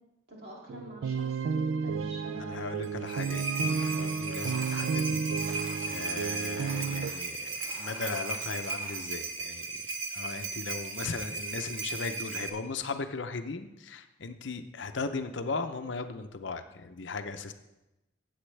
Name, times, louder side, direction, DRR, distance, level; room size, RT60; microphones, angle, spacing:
voice 1, 0.3-2.7, right 1 dB, 50° right, -4 dB, 2.7 m, -46 dB
sound 1, 0.7-7.1, right 5 dB, 90° right, 0.4 m, -32 dB
voice 2, 2.3-5.6 5.9-9.8 10.1-17.5, left 4 dB, 65° left, 8 dB, 0.7 m, -37 dB
sound 2, 2.8-12.5, right 3 dB, 75° right, 1.2 m, -36 dB
sound 3, 3.5-4.9 5.4-9.0, right 1 dB, 30° right, 2.4 m, -48 dB
15.0 x 7.9 x 3.3 m, 0.96 s
head